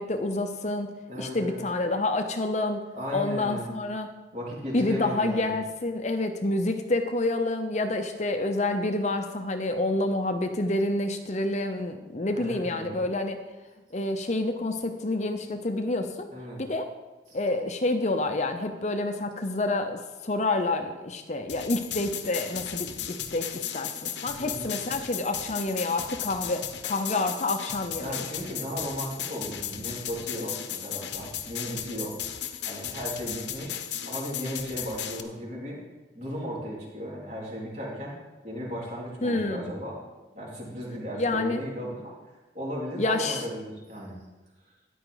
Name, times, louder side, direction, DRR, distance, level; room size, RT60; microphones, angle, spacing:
voice 1, 0.0-0.9 1.2-2.8 3.1-4.1 4.7-13.4 13.9-16.3 16.6-16.9 17.3-28.2 39.2-39.7 41.2-41.6 43.0-43.4, left 2 dB, 40° left, 7 dB, 0.7 m, -28 dB
voice 2, 1.1-1.6 2.9-3.7 4.3-5.5 12.3-13.1 16.3-16.6 17.3-17.4 24.4-24.8 28.0-32.2 32.6-35.8 36.1-38.2 38.4-40.0 40.3-42.1 42.5-44.2, equal, 40° right, -4 dB, 3.7 m, -36 dB
sound 1, 21.5-35.2, left 9 dB, 70° left, 0.9 m, -35 dB
14.0 x 10.0 x 3.9 m, 1.1 s
head